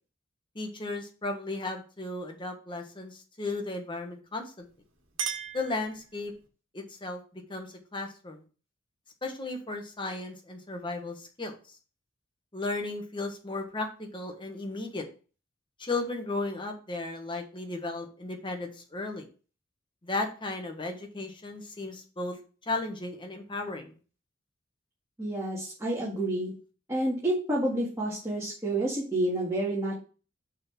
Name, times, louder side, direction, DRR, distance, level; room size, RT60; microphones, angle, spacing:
voice 1, 0.5-4.7 5.5-6.3 6.7-8.4 9.2-11.5 12.5-15.0 15.8-19.3 20.0-22.4 22.7-23.9, left 2 dB, 25° left, 3 dB, 1.3 m, -35 dB
Chink clink, 4.6-6.5, right 7 dB, 85° right, 1.5 m, -38 dB
voice 2, 25.2-26.5 26.9-30.0, right 1 dB, 15° right, -7 dB, 2.0 m, -29 dB
6.4 x 4.0 x 6.1 m, 0.36 s
head